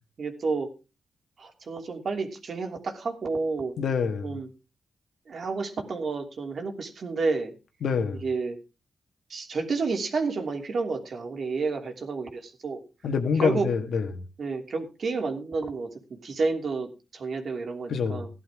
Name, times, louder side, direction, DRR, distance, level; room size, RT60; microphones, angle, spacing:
voice 1, 0.2-0.7 1.4-3.8 4.2-4.5 5.3-7.5 8.2-8.6 9.3-12.8 13.4-13.7 14.4-18.3, right 4 dB, 60° right, 2.9 m, -30 dB
voice 2, 3.8-4.4 7.8-8.2 13.0-14.2 17.9-18.3, left 6 dB, 75° left, 1.8 m, -26 dB
15.0 x 11.5 x 3.7 m
cardioid pair, 90°, 0 cm